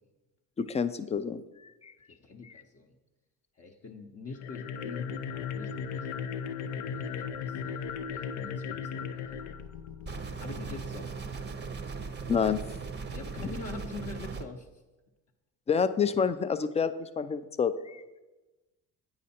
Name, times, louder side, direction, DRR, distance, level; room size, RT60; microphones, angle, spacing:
voice 1, 0.6-1.4 1.8-1.9 2.4-2.5 12.3-12.6 15.7-18.2, left 6 dB, 20° left, 12 dB, 0.3 m, -28 dB
voice 2, 2.1-3.0 3.6-6.1 6.9-7.8 8.1-9.5 10.4-11.1 13.1-14.7, left 3 dB, 35° left, 1 dB, 0.8 m, -44 dB
sound 1, 4.3-10.6, left 6 dB, 85° left, 0.6 m, -37 dB
sound 2, 10.1-14.4, right 4 dB, 25° right, 0.6 m, -38 dB
8.5 x 5.0 x 4.2 m, 1.1 s
supercardioid pair, 80°, 40 cm